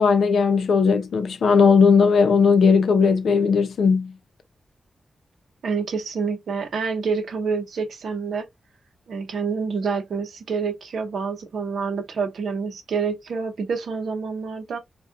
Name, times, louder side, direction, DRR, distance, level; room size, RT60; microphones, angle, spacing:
voice 1, 0.0-4.1, left 5 dB, 85° left, 0.5 m, -17 dB
voice 2, 5.6-8.5 9.1-14.8, right 5 dB, 80° right, 0.6 m, -27 dB
2.4 x 2.2 x 2.5 m
wide cardioid pair, 165°, 0 cm